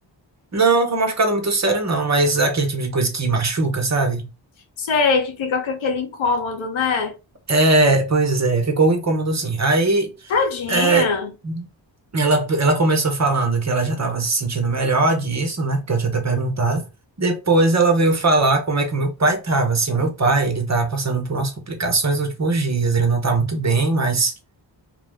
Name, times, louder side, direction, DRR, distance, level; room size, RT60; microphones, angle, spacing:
voice 1, 0.5-4.3 7.5-10.3 10.7-11.1 11.4-11.7 12.1-16.9 17.2-24.3, right 3 dB, 35° right, 0.8 m, -20 dB
voice 2, 4.8-7.1 10.3-11.3, left 4 dB, 90° left, 0.8 m, -22 dB
2.3 x 2.1 x 3.4 m
cardioid pair, 60°, 46 cm